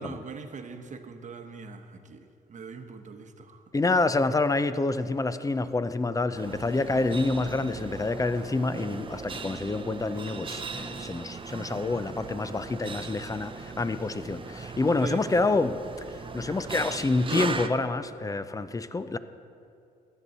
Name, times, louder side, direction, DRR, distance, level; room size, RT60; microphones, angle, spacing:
voice 1, 0.0-3.6 12.0-12.2 15.0-15.5, right 5 dB, 45° right, 7 dB, 1.0 m, -42 dB
voice 2, 3.7-15.8 16.1-19.2, left 3 dB, 20° left, 12 dB, 0.5 m, -27 dB
sound 1, 6.3-17.7, right 5 dB, 30° right, 0.6 m, -38 dB
15.0 x 9.9 x 4.1 m, 2.5 s
cardioid pair, 90°, 18 cm